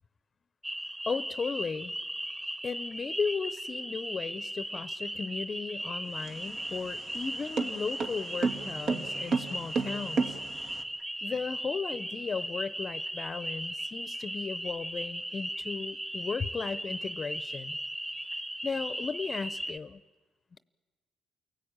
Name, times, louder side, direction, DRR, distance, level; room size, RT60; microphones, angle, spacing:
sound 1, 0.6-19.8, right 1 dB, 15° right, 1.4 m, -37 dB
voice 1, 1.1-1.9 2.6-10.4 11.2-17.8 18.6-20.0, left 5 dB, 40° left, 15 dB, 0.7 m, -35 dB
sound 2, 6.1-10.8, right 4 dB, 65° right, 2.2 m, -33 dB
29.0 x 18.5 x 8.8 m, 1.4 s
cardioid pair, 90°, 0 cm